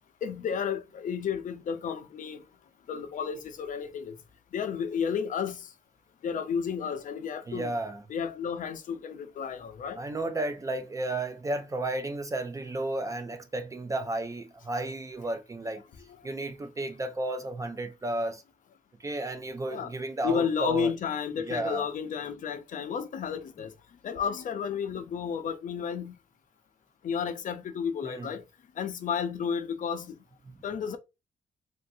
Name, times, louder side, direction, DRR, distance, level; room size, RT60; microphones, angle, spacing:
voice 1, 0.2-2.4 2.9-4.1 4.5-5.6 6.2-7.7 8.1-10.0 19.7-19.9 20.2-23.7 24.0-26.1 27.0-28.4 28.8-30.1 30.6-31.0, left 7 dB, 55° left, 0.6 m, -32 dB
voice 2, 7.5-8.0 10.0-15.8 16.2-18.4 19.0-20.9 21.4-21.8 28.0-28.3, right 2 dB, 20° right, 0.4 m, -33 dB
3.3 x 2.5 x 2.6 m
wide cardioid pair, 160°, 16 cm